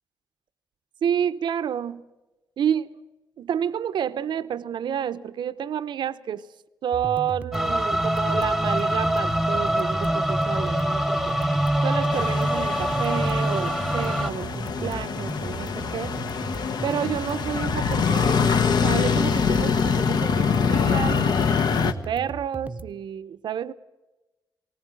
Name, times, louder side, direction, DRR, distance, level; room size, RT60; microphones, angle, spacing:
voice 1, 1.0-2.1 2.6-3.0 3.4-6.5 6.8-11.3 11.8-16.2 16.8-21.3 21.8-23.7, right 9 dB, 80° right, 0.7 m, -29 dB
sound 1, 6.9-22.9, right 3 dB, 15° right, 0.7 m, -36 dB
sound 2, 7.5-14.3, right 1 dB, ahead, 1.1 m, -24 dB
sound 3, 12.1-21.9, left 6 dB, 65° left, 1.1 m, -24 dB
19.5 x 18.5 x 8.9 m
wide cardioid pair, 160°, 8 cm